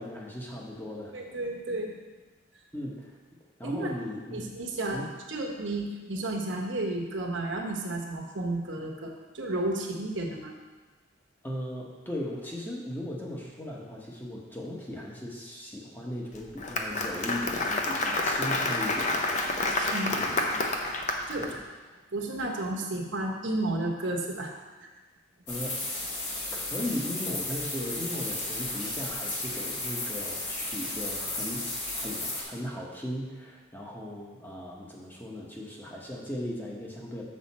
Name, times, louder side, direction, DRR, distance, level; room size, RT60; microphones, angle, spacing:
voice 1, 0.0-1.1 2.7-3.2 3.6-4.4 4.9-5.1 11.4-19.4 20.1-20.7 21.4-21.6 25.5-25.8 26.5-31.7 31.9-37.2, left 1 dB, 10° left, -3 dB, 1.1 m, -37 dB
voice 2, 1.1-2.0 3.6-4.0 4.3-10.5 19.6-20.3 21.3-21.5 22.1-24.5, right 2 dB, 60° right, 1 dB, 1.1 m, -32 dB
Applause, 16.4-21.5, left 2 dB, 35° left, 0.6 m, -29 dB
sound 1, 25.5-32.4, left 2 dB, 55° left, 2.0 m, -34 dB
6.9 x 6.5 x 4.2 m, 1.3 s
head